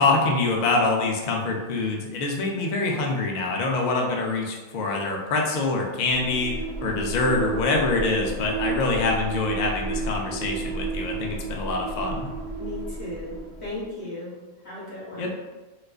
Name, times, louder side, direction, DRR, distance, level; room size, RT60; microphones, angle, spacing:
voice 1, 0.0-12.3 15.2-15.3, left 3 dB, 80° left, 0 dB, 0.4 m, -25 dB
sound 1, 6.1-13.9, right 3 dB, 50° right, 0.4 m, -32 dB
voice 2, 12.6-14.4 14.6-15.3, left 2 dB, 55° left, -9 dB, 1.8 m, -36 dB
4.1 x 2.4 x 2.4 m, 1.2 s
omnidirectional pair, 1.4 m